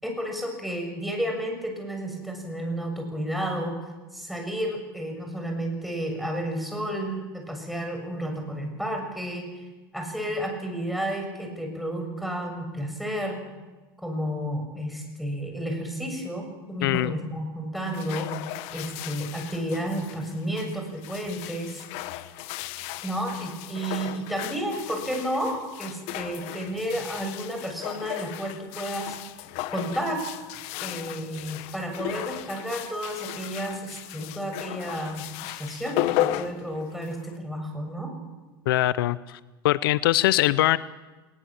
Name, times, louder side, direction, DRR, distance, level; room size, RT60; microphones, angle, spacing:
voice 1, 0.0-3.8 4.1-9.5 9.9-13.4 14.0-21.8 23.0-29.2 29.7-30.3 30.8-38.1, equal, ahead, 3 dB, 7.2 m, -31 dB
voice 2, 16.8-17.1 38.7-39.4 39.6-40.8, left 15 dB, 80° left, 18 dB, 0.6 m, -22 dB
sound 1, 17.8-37.4, left 14 dB, 65° left, 1.2 m, -35 dB
20.5 x 20.0 x 7.6 m, 1.2 s
hypercardioid pair, 95°, 12 cm